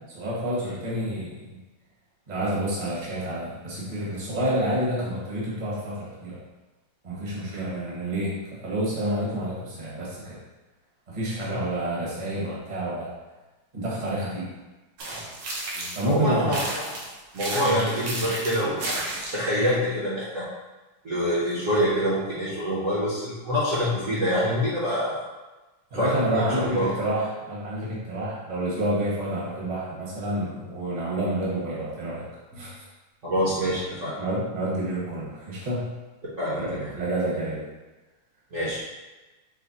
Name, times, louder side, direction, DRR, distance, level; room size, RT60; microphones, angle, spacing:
voice 1, 0.1-1.6 2.3-6.4 7.0-10.4 11.1-13.1 13.7-14.5 15.9-16.6 17.6-17.8 25.9-32.3 32.5-32.8 34.2-35.9 36.6-36.7 36.9-37.7, right 1 dB, 30° right, -6 dB, 0.9 m, -29 dB
sound 1, 15.0-16.1 16.5-19.5, right 2 dB, 80° right, 1.7 m, -32 dB
voice 2, 15.8-16.6 17.3-18.8 19.3-20.5 21.0-25.2 25.9-26.4 26.7-26.9 32.5-32.6 33.2-34.2 36.4-36.9 38.5-38.8, equal, 50° right, -9 dB, 1.0 m, -26 dB
4.9 x 2.2 x 4.1 m, 1.1 s
omnidirectional pair, 2.3 m